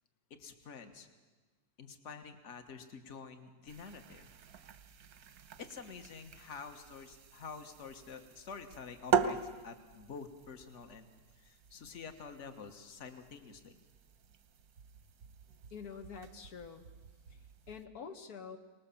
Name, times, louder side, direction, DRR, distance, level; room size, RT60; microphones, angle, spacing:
voice 1, 0.4-1.1 1.8-4.3 5.6-9.4 9.6-11.1 11.4-13.8, left 5 dB, 55° left, 7 dB, 1.7 m, -48 dB
sound 1, 3.7-17.9, right 7 dB, 90° right, 1.5 m, -41 dB
voice 2, 15.7-16.8 17.3-18.6, left 6 dB, 90° left, 6 dB, 1.8 m, -47 dB
24.5 x 19.5 x 7.1 m, 1.3 s
omnidirectional pair, 1.6 m